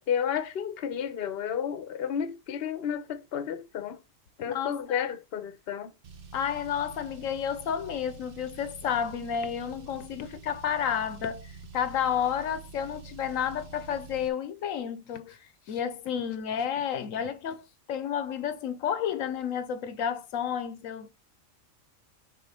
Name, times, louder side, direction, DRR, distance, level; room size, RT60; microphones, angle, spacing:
voice 1, 0.1-4.0 4.4-5.9, left 8 dB, 55° left, 0.9 m, -31 dB
voice 2, 4.5-4.8 6.3-11.5 11.7-15.4 15.7-21.1, left 8 dB, 80° left, 1.1 m, -31 dB
Car, 6.0-14.3, right 5 dB, 50° right, 0.9 m, -47 dB
6.4 x 4.5 x 4.2 m
omnidirectional pair, 1.4 m